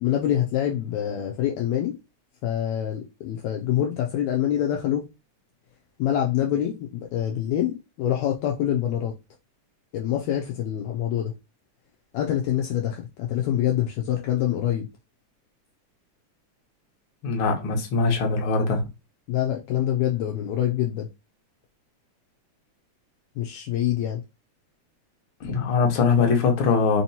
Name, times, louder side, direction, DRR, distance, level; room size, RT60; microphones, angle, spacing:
voice 1, 0.0-2.0 2.4-5.1 6.0-9.1 9.9-11.3 12.1-14.9 19.3-21.1 23.4-24.2, left 11 dB, 80° left, 1.7 m, -25 dB
voice 2, 17.2-18.8 25.4-27.0, left 5 dB, 55° left, 1.5 m, -22 dB
4.6 x 2.9 x 2.8 m
omnidirectional pair, 3.6 m